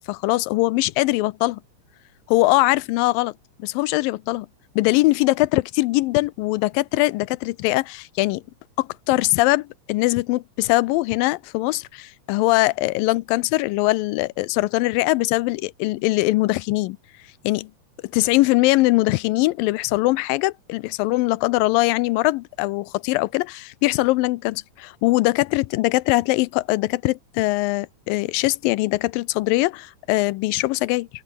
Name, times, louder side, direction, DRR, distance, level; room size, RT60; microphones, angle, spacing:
voice 1, 0.0-1.6 2.3-3.3 3.6-4.5 4.8-8.4 8.8-17.0 17.4-17.7 18.1-31.1, left 20 dB, 85° left, 2.3 m, -21 dB
open air
omnidirectional pair, 4.1 m